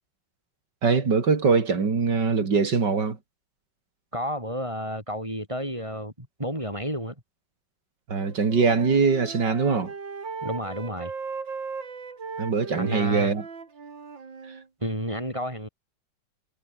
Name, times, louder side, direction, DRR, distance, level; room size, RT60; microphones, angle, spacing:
voice 1, 0.8-3.2 8.1-9.9 12.4-13.4, right 5 dB, 65° right, 3.5 m, -22 dB
voice 2, 4.1-7.1 10.4-11.1 12.8-13.3 14.8-15.7, equal, 15° right, 8.2 m, -31 dB
Wind instrument woodwind instrument, 8.2-14.7, right 5 dB, 80° right, 3.7 m, -38 dB
omnidirectional pair, 2.0 m